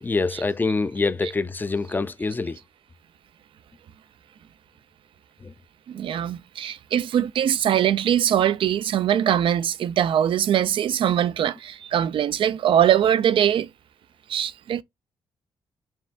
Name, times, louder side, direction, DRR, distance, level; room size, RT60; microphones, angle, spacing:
voice 1, 0.0-2.6 5.4-5.5, left 3 dB, 20° left, 0.4 m, -25 dB
voice 2, 5.9-13.7 14.3-14.8, right 10 dB, 70° right, 0.4 m, -22 dB
4.4 x 3.4 x 2.4 m
cardioid pair, 80°, 9 cm